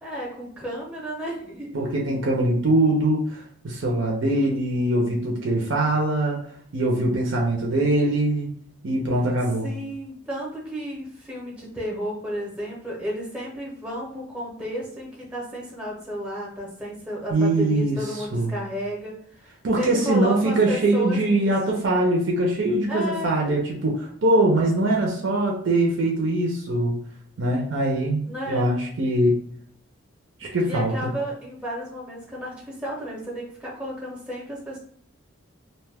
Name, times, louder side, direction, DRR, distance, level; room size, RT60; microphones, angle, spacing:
voice 1, 0.0-1.7 9.6-21.8 22.9-23.4 28.2-28.7 30.6-34.8, equal, 5° right, -4 dB, 0.7 m, -33 dB
voice 2, 1.7-6.4 6.7-8.5 8.8-9.7 17.3-18.5 19.6-27.0 27.4-29.4 30.4-30.9, right 1 dB, 60° right, -2 dB, 0.5 m, -22 dB
2.6 x 2.2 x 3.3 m, 0.63 s
head